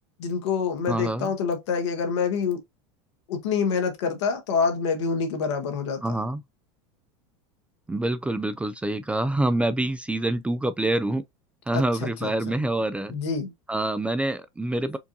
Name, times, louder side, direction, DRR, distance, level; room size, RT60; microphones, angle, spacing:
voice 1, 0.2-2.6 3.3-6.0 11.7-11.8 12.2-12.3 13.1-13.5, left 5 dB, 80° left, 1.3 m, -26 dB
voice 2, 0.9-1.3 6.0-6.4 7.9-11.2 11.7-13.1 13.7-15.0, right 1 dB, 10° right, 0.4 m, -26 dB
4.5 x 2.5 x 2.6 m
hypercardioid pair, 105°, 15 cm